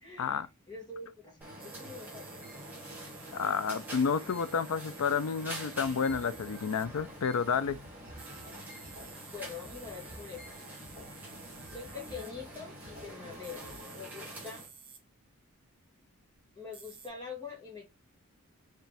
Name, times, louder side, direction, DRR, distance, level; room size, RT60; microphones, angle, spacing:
voice 1, 0.0-2.3 9.3-10.4 11.7-13.6 13.9-14.6 16.5-17.9, left 5 dB, 20° left, 1.6 m, -45 dB
sound 1, 1.4-14.7, right 1 dB, 10° right, 1.8 m, -46 dB
sound 2, 1.6-6.9 8.0-12.3 13.4-15.0 15.5-15.6 16.3-16.4 16.7-17.1, right 5 dB, 25° right, 0.8 m, -53 dB
voice 2, 3.3-7.8, left 6 dB, 75° left, 0.4 m, -30 dB
sound 3, 6.1-13.8, equal, 40° right, 2.1 m, -53 dB
4.7 x 3.3 x 3.4 m
head